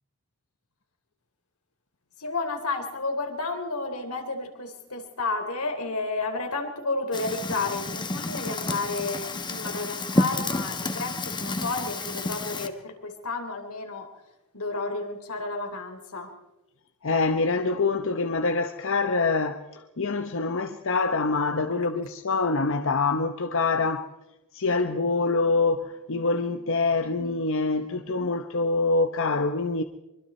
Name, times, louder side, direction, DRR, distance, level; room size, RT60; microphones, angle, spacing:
voice 1, 2.2-14.1 14.5-16.3, left 3 dB, 85° left, 3.7 m, -31 dB
Fire, 7.1-12.7, left 2 dB, 20° left, 1.3 m, -30 dB
voice 2, 17.0-24.1 24.5-29.8, left 3 dB, 60° left, 1.0 m, -25 dB
24.5 x 24.5 x 4.4 m
head